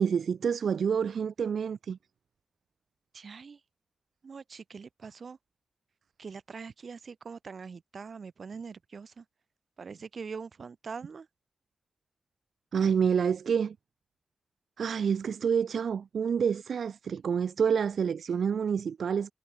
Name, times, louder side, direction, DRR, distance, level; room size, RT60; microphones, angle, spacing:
voice 1, 0.0-2.0 12.7-13.8 14.8-19.3, right 7 dB, 90° right, 0.3 m, -28 dB
voice 2, 3.1-3.6 4.2-5.4 6.2-9.2 9.8-11.3, right 5 dB, 70° right, 2.3 m, -43 dB
cardioid pair, 60°, 0 cm